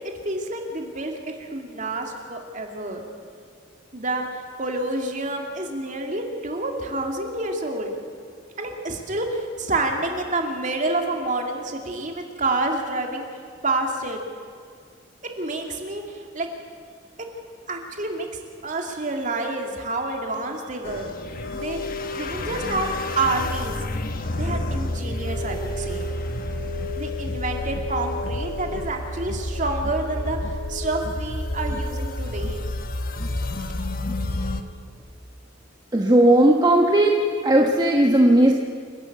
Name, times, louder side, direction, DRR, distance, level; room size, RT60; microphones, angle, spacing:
voice 1, 0.2-3.0 3.9-7.9 8.6-13.3 13.6-14.2 15.4-16.5 17.7-18.3 18.6-21.1 21.5-22.9 23.2-23.8 24.3-26.1 27.0-32.7, right 2 dB, 40° right, 2 dB, 2.4 m, -28 dB
sound 1, 20.8-34.6, left 1 dB, 45° left, 1.1 m, -29 dB
voice 2, 35.9-38.5, right 1 dB, 20° right, 0 dB, 1.2 m, -17 dB
28.5 x 11.5 x 8.0 m, 2.1 s
head